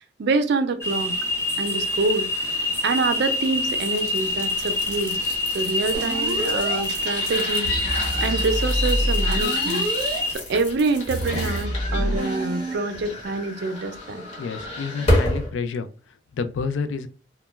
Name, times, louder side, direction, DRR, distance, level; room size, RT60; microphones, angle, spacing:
voice 1, 0.2-1.2 1.6-2.3 2.8-5.2 5.5-7.7 8.2-9.9 10.3-14.2, right 3 dB, 60° right, 0.4 m, -26 dB
sound 1, 0.8-10.4, left 2 dB, 15° left, 0.6 m, -26 dB
sound 2, 1.8-15.5, left 1 dB, 40° left, 1.0 m, -31 dB
sound 3, 5.9-6.8 7.6-10.2 11.1-12.7, equal, 25° right, 0.7 m, -27 dB
voice 2, 14.4-15.9 16.4-17.1, left 5 dB, 80° left, 0.4 m, -29 dB
2.2 x 2.1 x 3.0 m
head